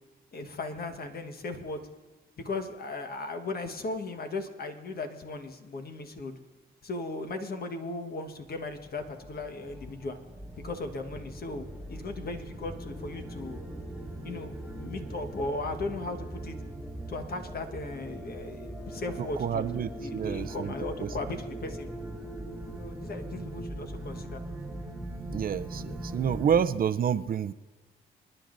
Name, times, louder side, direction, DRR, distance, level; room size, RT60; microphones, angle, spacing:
voice 1, 0.3-1.8 2.4-6.3 6.8-10.2 10.6-13.6 14.2-16.6 17.1-21.9 22.7-24.4, left 2 dB, 55° left, 6 dB, 1.3 m, -37 dB
sound 1, 8.6-26.6, right 1 dB, ahead, 2.3 m, -40 dB
voice 2, 19.4-20.7 21.0-21.1 25.3-27.5, right 8 dB, 50° right, 14 dB, 0.5 m, -28 dB
26.5 x 10.0 x 2.6 m, 1.2 s
cardioid pair, 70°, 19 cm